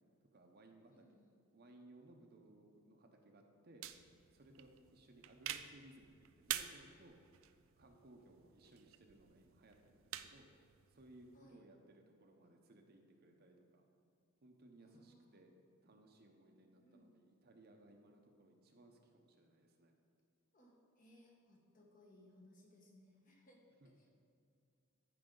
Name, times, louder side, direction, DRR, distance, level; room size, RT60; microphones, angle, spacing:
voice 1, 0.2-1.2 1.5-3.8 4.3-7.2 7.8-10.5 10.9-13.9 14.4-19.9 23.8-24.1, right 1 dB, 45° right, 3 dB, 0.8 m, -63 dB
voice 2, 0.9-1.3 11.3-11.6 14.8-15.4 16.8-17.1 20.5-23.6 24.0-24.1, left 1 dB, 40° left, -1 dB, 1.3 m, -65 dB
sound 1, 3.8-11.4, right 12 dB, 60° right, 0.4 m, -49 dB
14.0 x 4.9 x 3.9 m, 2.4 s
head